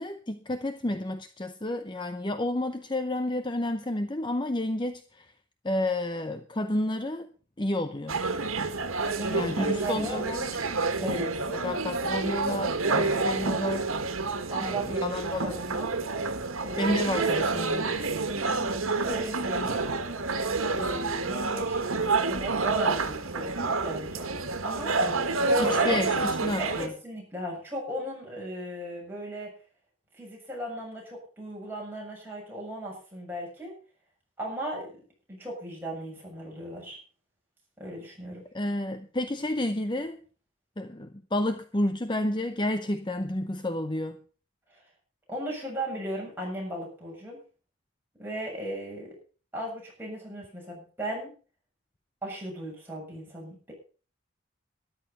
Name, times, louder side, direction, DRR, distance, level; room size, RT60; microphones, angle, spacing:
voice 1, 0.0-5.3 5.6-7.3 7.6-8.2 9.3-10.5 11.0-11.2 11.6-13.9 14.6-15.5 16.8-18.0 25.0-25.2 25.6-26.9 38.5-40.2 40.8-44.2, left 1 dB, 20° left, 0.7 m, -30 dB
sound 1, 8.1-26.9, right 3 dB, 90° right, 1.7 m, -28 dB
voice 2, 9.1-10.4 11.0-11.3 14.5-15.9 16.6-17.0 18.5-19.9 20.7-21.8 22.1-24.3 24.6-25.1 25.3-26.1 26.6-29.5 30.2-33.7 34.4-34.9 35.3-37.0 37.8-38.4 44.7-44.8 45.3-47.4 48.2-49.2 49.5-51.3 52.2-53.7, right 1 dB, 10° right, 7.2 m, -36 dB
13.5 x 11.5 x 5.5 m
head